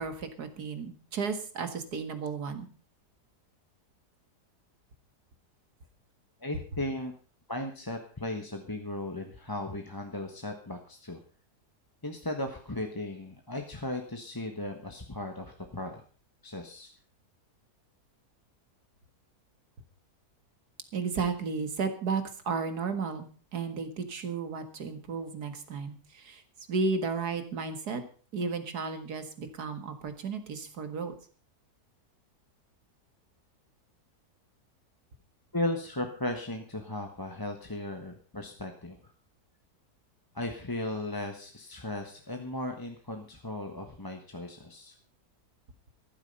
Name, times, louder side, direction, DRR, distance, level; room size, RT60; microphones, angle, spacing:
voice 1, 0.0-2.7 20.9-23.3 23.5-26.4 26.7-28.0 28.3-31.1, right 5 dB, 75° right, 9 dB, 2.3 m, -33 dB
voice 2, 6.4-7.1 7.5-11.2 12.0-16.0 16.4-16.9 35.5-39.0 40.3-44.9, left 1 dB, 15° left, 4 dB, 1.2 m, -36 dB
14.0 x 12.0 x 5.4 m, 0.39 s
omnidirectional pair, 1.7 m